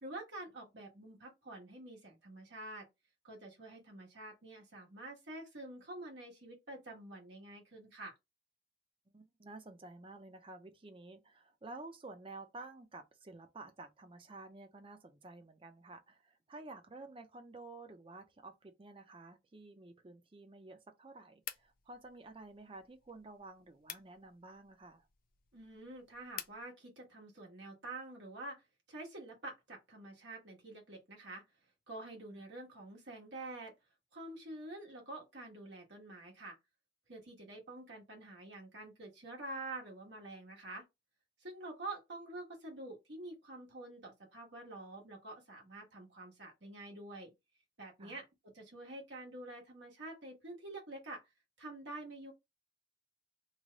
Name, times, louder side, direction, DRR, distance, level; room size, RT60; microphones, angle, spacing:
voice 1, 0.0-2.9 3.2-8.1 25.5-28.6 28.9-31.4 31.9-33.7 34.1-36.6 37.1-40.8 41.4-47.3 47.8-48.2 48.5-51.2 51.6-52.3, right 2 dB, 85° right, 1.3 m, -47 dB
voice 2, 9.1-25.1 48.0-48.2, right 2 dB, 30° right, 0.6 m, -52 dB
sound 1, 21.4-26.6, left 11 dB, 50° left, 0.4 m, -52 dB
3.2 x 2.2 x 3.8 m
head